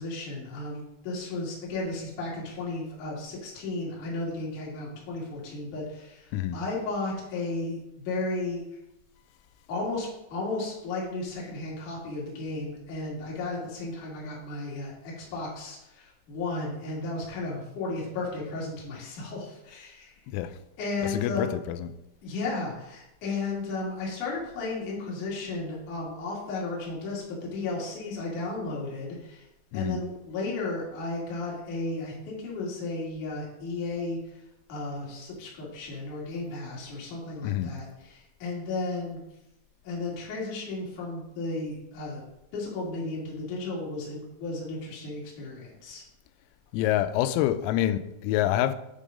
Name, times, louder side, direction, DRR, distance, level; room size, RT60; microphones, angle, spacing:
voice 1, 0.0-8.6 9.7-20.2 20.8-21.5 22.2-29.4 29.7-34.4 34.7-39.2 39.8-42.2 42.5-46.0, left 3 dB, 50° left, 3.0 m, -34 dB
voice 2, 20.3-20.6 21.0-21.9 29.7-30.0 37.4-37.8 46.7-48.8, left 12 dB, 90° left, 3.3 m, -27 dB
8.4 x 5.4 x 5.1 m
omnidirectional pair, 6.0 m